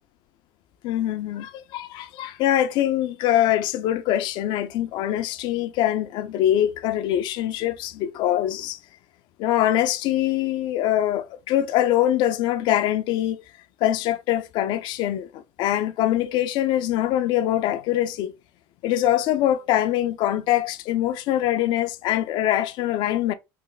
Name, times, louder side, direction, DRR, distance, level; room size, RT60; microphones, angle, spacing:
voice 1, 0.8-8.8 9.4-13.4 13.8-18.3 18.8-23.3, left 12 dB, 65° left, 0.5 m, -23 dB
3.3 x 2.0 x 3.8 m
supercardioid pair, 90°, 9 cm